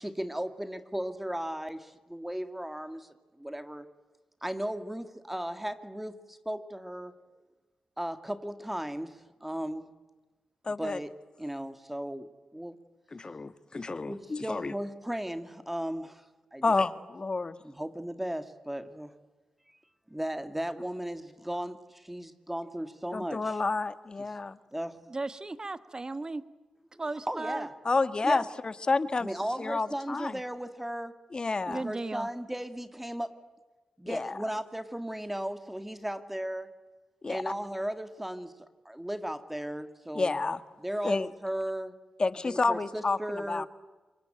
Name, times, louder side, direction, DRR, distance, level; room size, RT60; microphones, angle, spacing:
voice 1, 0.0-3.9 4.4-7.1 8.0-9.8 10.8-11.1 11.4-12.3 12.5-12.8 14.1-16.2 16.5-16.6 17.6-19.1 20.1-23.6 24.7-25.0 27.3-27.7 28.2-28.5 29.2-31.1 31.7-33.4 34.0-36.7 37.3-38.5 38.9-40.4 40.8-42.0 42.4-43.7, right 1 dB, 10° right, 9 dB, 2.1 m, -36 dB
voice 2, 10.6-11.0 13.1-14.7 16.6-17.5 23.1-24.6 27.8-29.3 29.6-30.4 31.3-31.9 34.1-34.4 37.2-37.4 40.1-40.6 41.0-41.3 42.2-43.7, left 3 dB, 40° left, 12 dB, 1.5 m, -30 dB
voice 3, 25.1-26.4 27.0-27.7 31.7-32.3, right 2 dB, 35° right, 12 dB, 1.6 m, -35 dB
26.0 x 23.5 x 9.0 m, 1.2 s
supercardioid pair, 45°, 2 cm